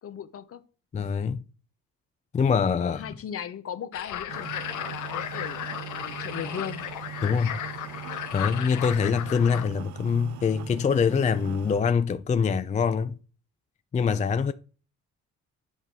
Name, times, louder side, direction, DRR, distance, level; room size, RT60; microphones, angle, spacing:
voice 1, 0.0-0.6 2.8-6.8, left 8 dB, 50° left, 0.7 m, -37 dB
voice 2, 0.9-1.4 2.3-3.1 7.2-7.6 8.3-13.2 13.9-14.5, left 6 dB, 25° left, 0.4 m, -24 dB
sound 1, 3.9-9.7, left 10 dB, 80° left, 0.8 m, -35 dB
sound 2, 4.3-11.8, right 13 dB, 70° right, 0.5 m, -41 dB
8.1 x 5.5 x 3.6 m
cardioid pair, 90°, 30 cm